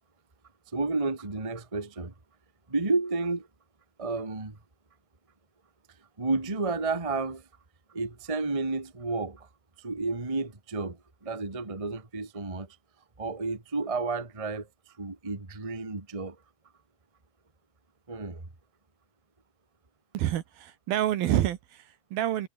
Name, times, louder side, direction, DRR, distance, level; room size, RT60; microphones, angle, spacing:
voice 1, 0.7-2.1 2.7-3.5 4.0-4.6 6.2-7.4 7.9-9.5 9.8-12.7 13.2-14.7 15.0-16.4 18.1-18.4, right 3 dB, 15° right, 1.3 m, -31 dB
voice 2, 20.1-22.5, right 12 dB, 70° right, 2.9 m, -28 dB
omnidirectional pair, 4.9 m